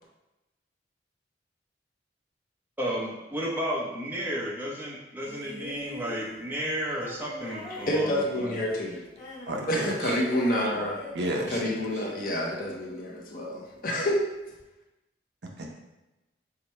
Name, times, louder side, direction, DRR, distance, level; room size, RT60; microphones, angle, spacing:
voice 1, 2.8-8.6, equal, 10° right, -4 dB, 0.8 m, -33 dB
sound 1, 5.2-13.6 14.6-14.7, left 2 dB, 70° left, 1.4 m, -43 dB
voice 2, 7.7-9.0 9.7-11.0 11.5-14.3, equal, 50° left, -1 dB, 0.8 m, -28 dB
voice 3, 9.5-10.2 11.1-11.6 15.4-15.8, right 1 dB, 70° right, 1 dB, 0.7 m, -32 dB
4.8 x 2.2 x 4.2 m, 1.0 s
head